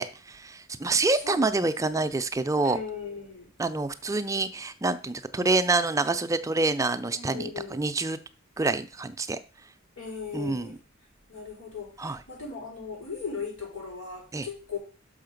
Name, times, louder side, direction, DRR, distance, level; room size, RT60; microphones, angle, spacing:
voice 1, 0.0-2.8 3.6-8.2 8.6-9.4 10.3-10.8 12.0-12.2 14.3-14.5, right 3 dB, 15° right, 0.4 m, -27 dB
voice 2, 0.8-2.1 2.6-3.5 7.1-7.8 10.0-10.8 11.3-14.8, left 5 dB, 85° left, 4.6 m, -38 dB
6.4 x 5.7 x 5.1 m
head